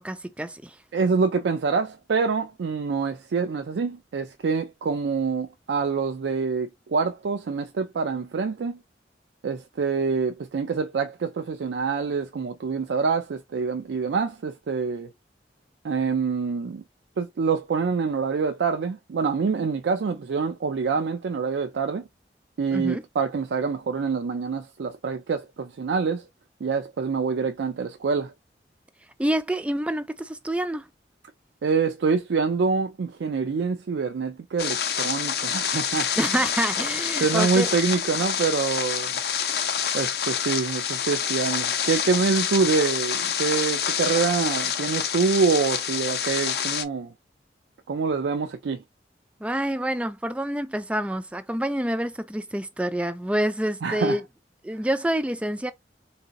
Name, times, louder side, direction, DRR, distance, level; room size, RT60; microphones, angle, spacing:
voice 1, 0.0-0.8 22.7-23.0 29.2-30.9 36.2-37.7 49.4-54.2 54.6-55.7, right 1 dB, 5° right, 0.3 m, -27 dB
voice 2, 0.9-8.8 9.4-15.1 15.8-16.8 17.2-22.1 22.6-26.3 26.6-28.3 31.6-36.2 37.2-39.2 39.9-47.1 47.9-48.8 53.8-54.2, right 5 dB, 85° right, 0.4 m, -26 dB
sound 1, 34.6-46.8, left 8 dB, 60° left, 0.5 m, -27 dB
3.8 x 2.7 x 2.5 m
head